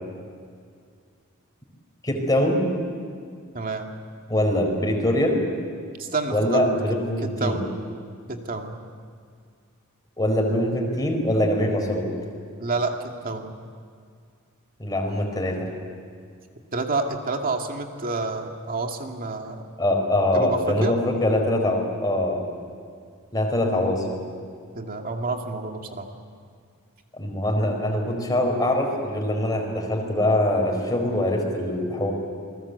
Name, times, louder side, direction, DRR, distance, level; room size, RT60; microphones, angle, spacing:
voice 1, 2.0-2.6 4.3-5.3 6.3-7.6 10.2-12.0 14.8-15.6 19.8-22.4 23.3-24.2 27.1-32.1, left 1 dB, 20° left, 1 dB, 4.6 m, -23 dB
voice 2, 3.5-3.9 6.0-6.7 7.2-7.6 8.3-8.8 12.6-13.6 16.7-19.7 20.3-20.9 24.8-26.1, right 3 dB, 40° right, 3 dB, 2.4 m, -29 dB
28.0 x 20.5 x 8.2 m, 2.2 s
head